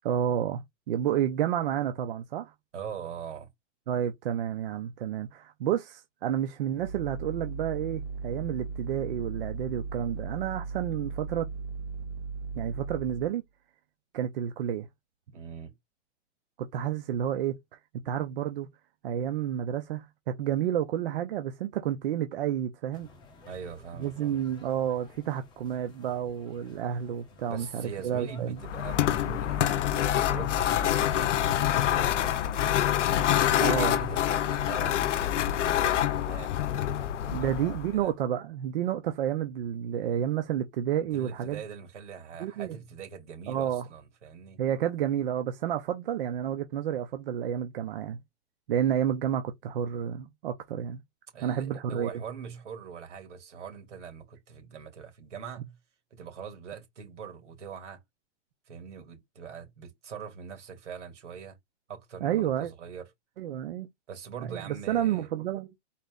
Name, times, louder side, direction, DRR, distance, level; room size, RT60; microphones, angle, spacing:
voice 1, 0.0-0.6 0.9-2.5 3.9-11.5 12.6-13.4 14.1-14.9 16.6-17.6 18.0-18.7 19.0-23.1 24.0-28.6 33.6-34.0 37.3-41.6 42.4-42.8 43.5-43.8 44.6-48.2 48.7-51.0 51.4-52.2 62.2-62.7 63.4-63.9 64.4-65.7, right 10 dB, 50° right, 0.8 m, -30 dB
voice 2, 2.7-3.5 15.3-15.8 23.4-24.4 27.5-32.6 33.2-38.1 41.0-44.6 51.3-55.8 56.1-58.0 58.7-61.6 61.9-63.0 64.1-65.3, right 6 dB, 85° right, 2.8 m, -42 dB
sound 1, 6.7-13.3, right 4 dB, 20° right, 0.3 m, -37 dB
sound 2, 22.9-34.8, left 3 dB, 10° left, 0.9 m, -51 dB
sound 3, 28.6-38.0, left 11 dB, 90° left, 0.7 m, -26 dB
4.2 x 3.0 x 3.7 m
hypercardioid pair, 165°, 35 cm